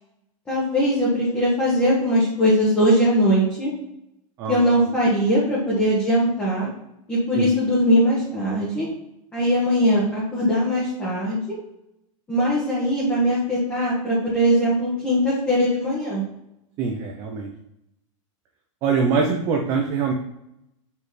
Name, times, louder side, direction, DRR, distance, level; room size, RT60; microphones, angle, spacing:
voice 1, 0.5-3.7 4.5-6.7 7.1-8.9 9.3-11.4 12.3-16.2, equal, 10° left, -7 dB, 1.3 m, -20 dB
voice 2, 4.4-4.7 7.4-7.5 16.8-17.5 18.8-20.1, right 5 dB, 20° right, 2 dB, 0.5 m, -23 dB
6.3 x 5.2 x 4.1 m, 0.83 s
supercardioid pair, 175°, 17 cm